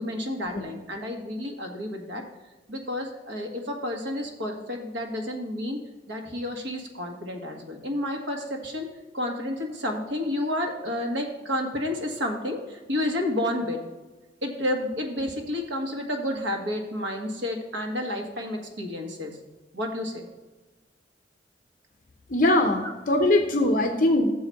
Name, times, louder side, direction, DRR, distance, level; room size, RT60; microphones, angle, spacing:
voice 1, 0.0-2.2 2.7-5.8 6.1-8.9 9.1-13.8 14.4-19.4 19.7-20.3 22.8-22.9, left 1 dB, 90° right, 2 dB, 1.5 m, -30 dB
voice 2, 22.3-24.3, left 1 dB, 50° left, 4 dB, 0.7 m, -21 dB
7.0 x 4.9 x 6.9 m, 1.2 s
head